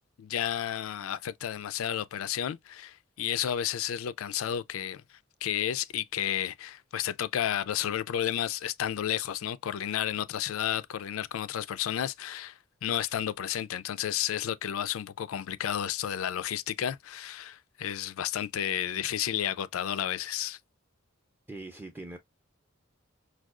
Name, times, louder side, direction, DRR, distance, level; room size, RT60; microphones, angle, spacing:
voice 1, 0.2-5.0 5.4-20.6, left 10 dB, 80° left, 0.4 m, -32 dB
voice 2, 21.5-22.2, right 2 dB, 10° right, 0.4 m, -41 dB
4.7 x 2.3 x 2.3 m
head